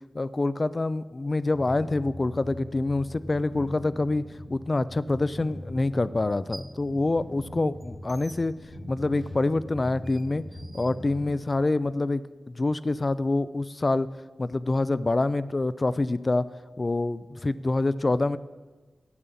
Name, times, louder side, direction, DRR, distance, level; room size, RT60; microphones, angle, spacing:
voice 1, 0.1-4.2 4.5-8.5 8.9-10.4 10.7-14.1 14.4-16.4 16.8-18.4, left 2 dB, 35° left, 15 dB, 0.3 m, -26 dB
sound 1, 1.5-11.3, left 1 dB, 85° left, 3.0 m, -41 dB
sound 2, 5.1-5.2 6.2-6.9 7.2-11.6, right 2 dB, 35° right, 1.1 m, -51 dB
8.8 x 8.5 x 6.9 m, 1.3 s
wide cardioid pair, 90°, 0 cm